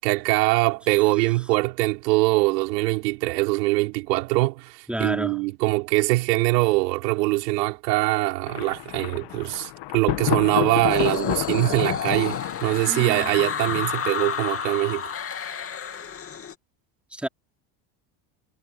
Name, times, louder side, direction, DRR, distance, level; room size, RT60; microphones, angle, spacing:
voice 1, 0.0-15.1, right 22 dB, 90° right, 5.3 m, -23 dB
voice 2, 4.9-5.4 12.9-13.3 17.1-17.3, right 1 dB, ahead, 3.7 m, -30 dB
Thunder, 8.5-14.3, left 17 dB, 55° left, 2.4 m, -30 dB
sound 1, 10.9-16.5, left 7 dB, 30° left, 2.8 m, -31 dB
supercardioid pair, 120°, 48 cm